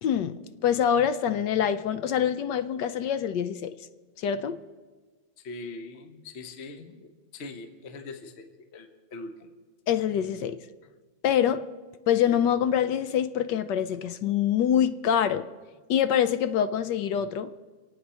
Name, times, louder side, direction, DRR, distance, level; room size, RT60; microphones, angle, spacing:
voice 1, 0.0-3.7 4.2-4.6 9.9-10.6 11.2-11.7 12.1-15.5 15.9-17.5, left 9 dB, 70° left, 1.2 m, -25 dB
voice 2, 5.4-9.5, left 3 dB, 40° left, 1.2 m, -42 dB
26.5 x 8.8 x 5.6 m
omnidirectional pair, 2.1 m